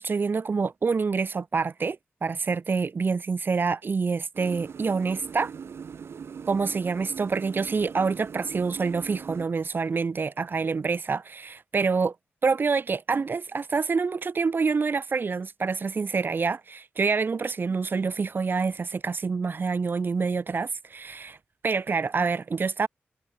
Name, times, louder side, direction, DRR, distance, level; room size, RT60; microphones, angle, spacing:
voice 1, 0.0-5.5 6.5-12.1 12.4-21.4 21.6-22.9, right 4 dB, 55° right, 3.2 m, -27 dB
sound 1, 4.3-9.5, right 6 dB, 75° right, 4.8 m, -41 dB
cardioid pair, 75°, 4 cm